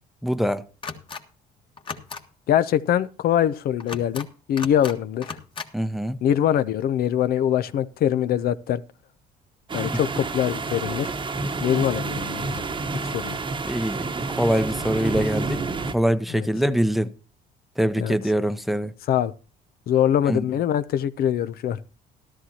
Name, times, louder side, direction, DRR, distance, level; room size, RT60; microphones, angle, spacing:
voice 1, 0.2-0.6 5.7-6.2 13.6-15.6 15.9-17.1 17.8-18.9 20.2-20.4, equal, ahead, 0.8 m, -24 dB
sound 1, 0.8-1.2 1.8-2.2 3.8-4.3 4.6-5.0 5.2-5.7, left 5 dB, 30° left, 1.6 m, -35 dB
voice 2, 2.5-5.4 6.2-8.8 9.7-11.1 11.6-12.6 13.1-13.4 16.4-16.5 18.0-18.2 19.1-19.3 19.9-21.8, left 10 dB, 65° left, 0.7 m, -23 dB
sound 2, 9.7-15.9, right 3 dB, 30° right, 1.1 m, -29 dB
13.5 x 13.0 x 2.8 m
cardioid pair, 110°, 17 cm